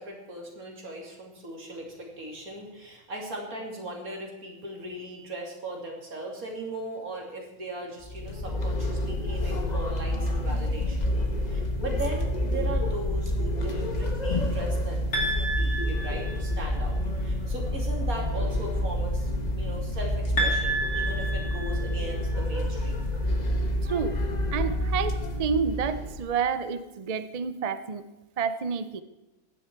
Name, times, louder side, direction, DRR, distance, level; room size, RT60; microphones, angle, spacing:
voice 1, 0.0-11.0 11.4-23.1, right 1 dB, 70° right, 0 dB, 3.1 m, -38 dB
sound 1, 8.0-26.3, left 1 dB, 30° left, 1.2 m, -28 dB
sound 2, 15.1-16.8 20.4-22.4, right 1 dB, 75° left, 3.0 m, -30 dB
voice 2, 23.8-24.2 24.5-28.0 28.4-29.0, right 6 dB, 50° right, 11 dB, 0.4 m, -29 dB
16.0 x 11.5 x 4.6 m, 1.0 s
omnidirectional pair, 1.6 m